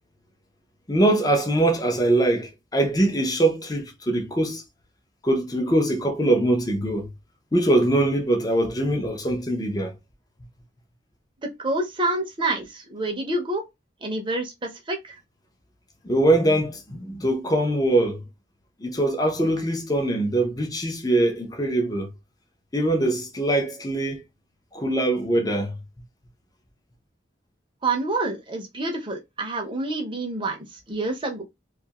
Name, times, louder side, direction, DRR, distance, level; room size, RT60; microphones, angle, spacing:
voice 1, 0.9-4.6 5.2-7.1 7.5-9.9 16.0-18.2 18.8-22.1 22.7-24.2 24.7-25.8, right 1 dB, 20° left, 0.6 m, -22 dB
voice 2, 11.4-13.6 14.0-15.2 27.8-31.4, right 2 dB, 25° right, 0.7 m, -28 dB
2.6 x 2.4 x 2.9 m
head